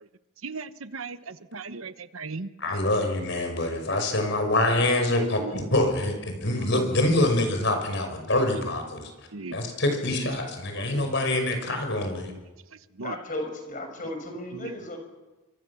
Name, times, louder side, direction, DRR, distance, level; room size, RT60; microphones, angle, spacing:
voice 1, 0.4-1.2 1.5-2.5 9.3-9.6 10.9-11.0 13.0-13.1, right 4 dB, 80° right, 12 dB, 1.1 m, -36 dB
voice 2, 2.6-9.1 9.5-12.3, left 1 dB, 60° left, 5 dB, 5.6 m, -25 dB
voice 3, 13.0-15.0, left 1 dB, 40° left, 5 dB, 5.9 m, -35 dB
27.5 x 25.0 x 7.1 m, 1.2 s
head